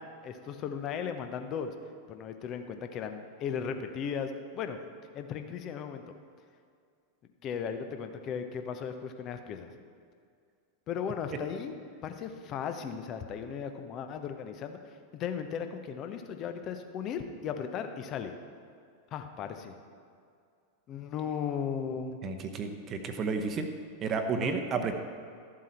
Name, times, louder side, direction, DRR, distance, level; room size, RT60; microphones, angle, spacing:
voice 1, 0.0-1.7 2.1-4.8 5.1-6.1 7.4-9.7 10.9-11.8 12.0-18.3 19.1-19.7 20.9-22.2 24.4-24.6, left 7 dB, 35° left, 7 dB, 0.8 m, -36 dB
voice 2, 22.2-23.7 24.0-25.0, right 5 dB, 30° right, 6 dB, 0.9 m, -31 dB
13.0 x 7.5 x 4.3 m, 2.3 s
figure-of-eight pair, 90°, 0 cm